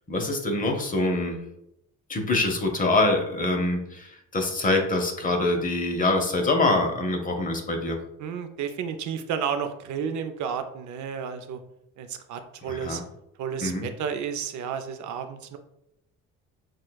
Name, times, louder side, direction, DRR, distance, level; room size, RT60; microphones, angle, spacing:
voice 1, 0.1-1.4 2.1-8.0 12.7-13.0 13.6-13.9, left 2 dB, 25° left, 3 dB, 0.8 m, -25 dB
voice 2, 8.2-11.6 12.0-13.0 13.4-15.6, right 7 dB, 60° right, 8 dB, 0.5 m, -32 dB
6.2 x 2.3 x 2.3 m, 0.80 s
cardioid pair, 90°, 33 cm